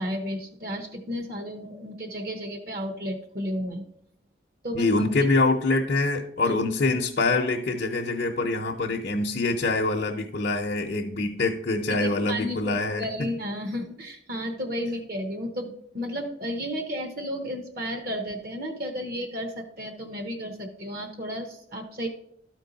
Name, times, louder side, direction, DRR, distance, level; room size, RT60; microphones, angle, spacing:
voice 1, 0.0-3.8 4.6-4.9 12.0-22.1, equal, 50° right, 5 dB, 0.9 m, -33 dB
voice 2, 4.7-13.1, left 3 dB, 50° left, -1 dB, 0.6 m, -25 dB
12.5 x 4.5 x 4.0 m, 0.70 s
head